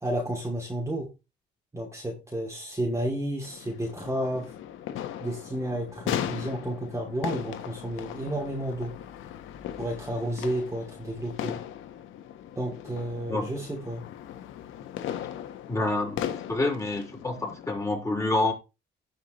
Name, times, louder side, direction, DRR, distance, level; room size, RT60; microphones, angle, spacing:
voice 1, 0.0-1.1 1.7-4.5 5.2-8.9 9.8-11.6 12.6-14.0, right 1 dB, 15° right, 2.8 m, -31 dB
sound 1, 3.4-17.8, left 10 dB, 90° left, 1.2 m, -38 dB
voice 2, 15.7-16.2 16.5-18.5, left 2 dB, 15° left, 5.0 m, -27 dB
17.0 x 5.7 x 3.1 m
cardioid pair, 90°, 20 cm